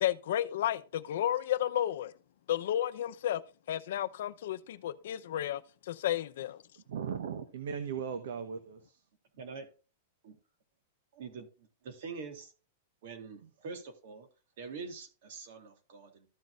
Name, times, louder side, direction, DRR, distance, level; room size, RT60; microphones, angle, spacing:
voice 1, 0.0-2.1 2.5-3.4 3.7-6.6, left 11 dB, 65° left, 0.7 m, -32 dB
voice 2, 6.8-9.0, right 7 dB, 80° right, 1.2 m, -38 dB
voice 3, 9.3-9.7 10.2-10.4 11.1-12.5 13.0-14.3 14.6-16.3, right 4 dB, 55° right, 3.0 m, -45 dB
14.0 x 6.3 x 2.5 m
supercardioid pair, 165°, 0 cm